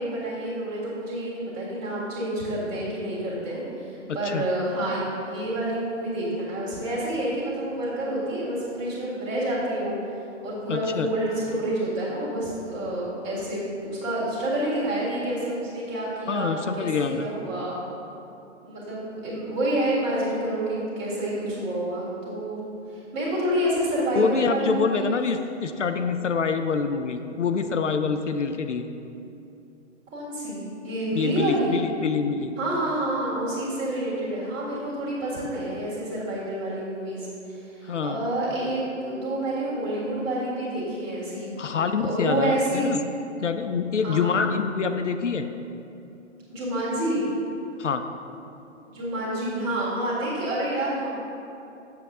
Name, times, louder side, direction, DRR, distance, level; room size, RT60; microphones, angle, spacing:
voice 1, 0.0-10.0 10.4-17.8 18.6-22.6 22.9-25.2 30.1-31.8 32.6-41.5 42.0-42.9 44.0-44.4 46.5-47.2 48.9-51.1, right 1 dB, 20° right, -7 dB, 1.8 m, -28 dB
voice 2, 4.1-4.5 10.7-11.1 16.3-17.3 24.1-28.9 31.1-32.6 37.8-38.3 41.6-43.0 43.4-45.5 47.8-48.1, left 5 dB, 75° left, 8 dB, 0.5 m, -26 dB
7.4 x 7.1 x 3.6 m, 2.8 s
figure-of-eight pair, 130°, 37 cm